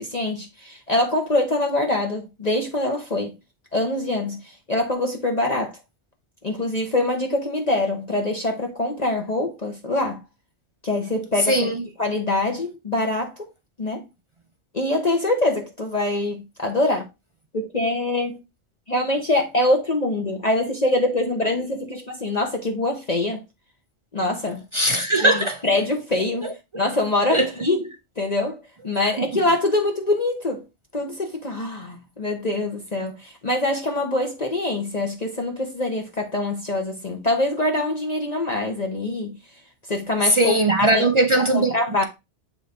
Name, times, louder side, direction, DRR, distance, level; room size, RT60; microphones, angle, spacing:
voice 1, 0.0-3.3 3.7-5.8 6.4-10.2 10.8-11.7 12.0-13.5 13.8-14.0 14.7-17.1 17.5-18.4 18.9-23.4 24.1-24.6 25.2-25.3 25.6-27.8 28.2-30.6 30.9-39.4 39.9-41.1 41.5-42.0, left 2 dB, 40° left, 1.1 m, -24 dB
voice 2, 11.5-11.8 24.7-25.6 27.3-27.5 29.2-29.3 40.3-41.7, right 2 dB, 45° right, 0.4 m, -19 dB
7.4 x 3.4 x 3.8 m
omnidirectional pair, 1.2 m